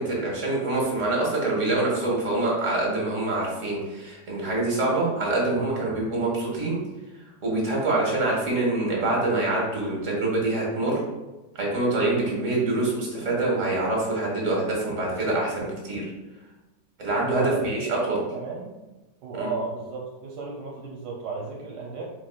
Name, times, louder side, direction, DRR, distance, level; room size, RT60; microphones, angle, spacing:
voice 1, 0.0-6.8 7.4-11.0 11.5-16.1 17.0-18.2 19.3-19.5, right 2 dB, 50° right, -3 dB, 1.6 m, -25 dB
voice 2, 17.3-18.7 19.2-22.0, right 4 dB, 75° right, -2 dB, 1.3 m, -34 dB
4.7 x 4.3 x 2.3 m, 1.1 s
omnidirectional pair, 1.9 m